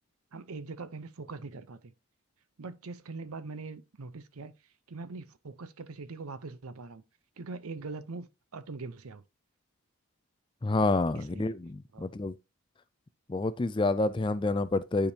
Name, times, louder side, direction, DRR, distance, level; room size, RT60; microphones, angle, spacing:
voice 1, 0.3-1.9 2.6-4.5 4.9-7.0 7.4-8.3 8.5-9.2 11.1-11.5 11.9-12.1, right 3 dB, 75° right, 0.7 m, -42 dB
voice 2, 10.6-12.3 13.3-15.1, left 2 dB, 20° left, 0.3 m, -28 dB
9.6 x 5.1 x 2.8 m
head